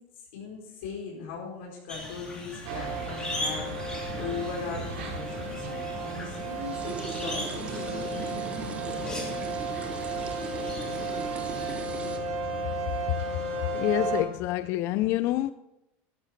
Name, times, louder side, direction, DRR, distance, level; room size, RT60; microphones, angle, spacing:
voice 1, 0.3-9.4, left 5 dB, 80° left, 4.8 m, -39 dB
sound 1, 1.9-11.7, left 1 dB, 10° left, 3.1 m, -40 dB
sound 2, 2.6-14.2, right 3 dB, 80° right, 4.6 m, -34 dB
sound 3, 3.0-12.2, right 4 dB, 20° right, 1.2 m, -40 dB
voice 2, 13.7-15.5, left 15 dB, 40° left, 0.4 m, -27 dB
13.0 x 12.5 x 4.5 m
supercardioid pair, 160°, 6 cm